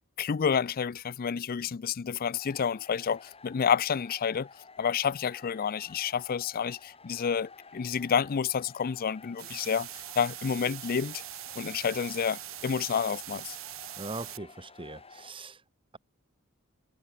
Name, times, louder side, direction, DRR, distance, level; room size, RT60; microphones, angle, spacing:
voice 1, 0.2-4.5 4.8-11.2 11.6-13.6, left 7 dB, 45° left, 0.4 m, -29 dB
sound 1, 2.4-15.3, left 4 dB, 30° left, 5.6 m, -52 dB
sound 2, 9.4-14.4, right 14 dB, 70° right, 3.1 m, -42 dB
voice 2, 14.0-15.6, right 2 dB, 25° right, 1.6 m, -40 dB
head